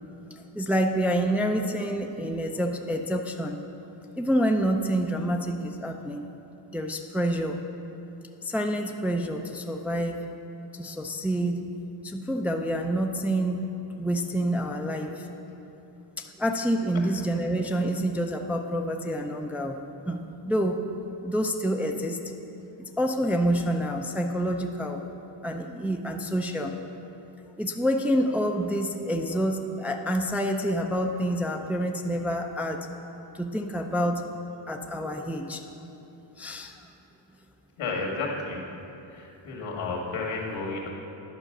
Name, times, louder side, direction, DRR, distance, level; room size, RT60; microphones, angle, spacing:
voice 1, 0.5-3.6 4.2-6.3 6.7-7.6 8.4-10.2 10.7-11.7 12.0-13.7 14.0-15.3 16.2-19.8 20.1-20.2 20.4-20.8 21.2-22.2 22.8-25.0 25.4-26.7 27.6-32.9 33.3-34.2 34.7-35.6 36.4-36.8, equal, 5° right, 3 dB, 0.4 m, -27 dB
voice 2, 37.8-38.7 39.0-40.9, left 3 dB, 85° left, -2 dB, 1.9 m, -32 dB
11.0 x 4.9 x 6.6 m, 3.0 s
cardioid pair, 110°, 46 cm